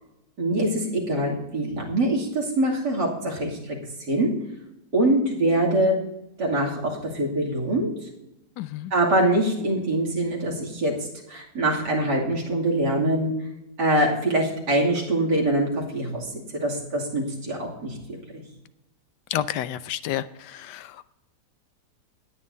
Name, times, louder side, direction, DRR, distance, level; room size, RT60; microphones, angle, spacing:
voice 1, 0.4-3.8 4.1-4.3 4.9-6.0 6.4-8.1 8.9-13.3 13.8-18.4, right 1 dB, 75° right, 3.3 m, -24 dB
voice 2, 8.6-8.9 19.3-21.2, left 11 dB, 85° left, 1.2 m, -30 dB
19.5 x 9.5 x 2.7 m
omnidirectional pair, 1.8 m